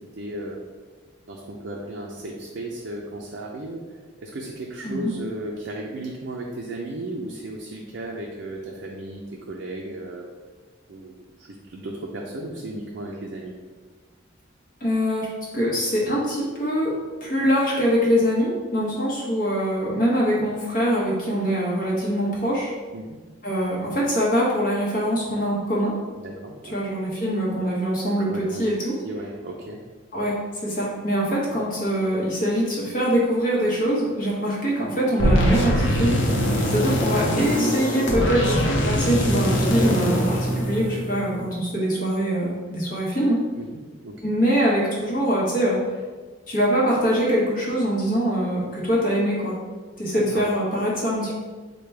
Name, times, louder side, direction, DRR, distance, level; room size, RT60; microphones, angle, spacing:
voice 1, 0.2-0.6 1.3-3.8 4.2-10.3 10.9-13.5 22.9-23.1 26.2-26.8 28.3-28.7 29.0-29.8 43.6-43.7 44.0-44.1 50.0-50.4, right 1 dB, 65° right, -2 dB, 0.4 m, -35 dB
voice 2, 14.8-15.3 15.5-16.9 17.2-22.7 23.4-25.9 26.6-28.9 30.1-36.2 36.7-43.4 44.2-45.8 46.5-49.6 50.0-51.4, equal, 45° left, -5 dB, 0.9 m, -23 dB
sound 1, 35.2-41.4, equal, 70° left, 0.7 m, -22 dB
4.7 x 2.2 x 3.3 m, 1.4 s
head